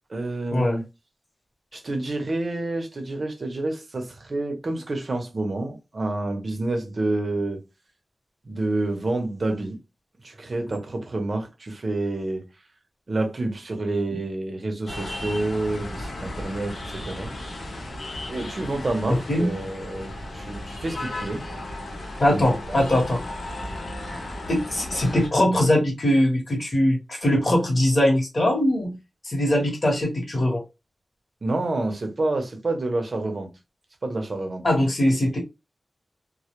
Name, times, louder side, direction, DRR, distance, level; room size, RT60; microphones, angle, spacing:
voice 1, 0.1-0.8 1.7-7.6 8.4-9.8 10.2-12.4 13.1-17.3 18.3-21.4 22.3-22.8 31.4-33.5 34.0-34.6, right 2 dB, 50° right, 0.6 m, -28 dB
sound 1, 14.9-25.3, left 1 dB, 80° left, 0.7 m, -35 dB
voice 2, 22.2-23.2 24.5-29.0 29.2-30.6 34.6-35.4, left 1 dB, 45° left, 1.0 m, -21 dB
2.1 x 2.1 x 2.9 m
wide cardioid pair, 95°, 0 cm